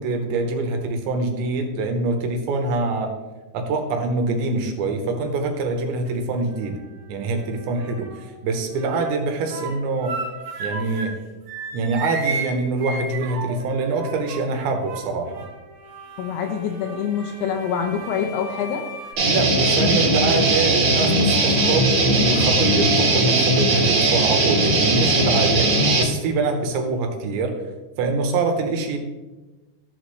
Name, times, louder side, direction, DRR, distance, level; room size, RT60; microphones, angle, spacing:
voice 1, 0.0-3.1 3.5-6.8 7.1-10.2 10.6-11.1 11.7-15.4 19.2-27.6 28.0-29.0, right 3 dB, 80° right, 4 dB, 3.3 m, -24 dB
sound 1, 5.6-6.1 6.5-8.3 8.6-11.2 11.5-19.1, right 4 dB, 65° right, 2.1 m, -35 dB
voice 2, 16.2-18.9, left 7 dB, 75° left, 4 dB, 2.6 m, -25 dB
Guitar, 19.2-26.0, right 2 dB, 45° right, 2.6 m, -19 dB
14.5 x 6.5 x 3.2 m, 1.2 s
omnidirectional pair, 5.2 m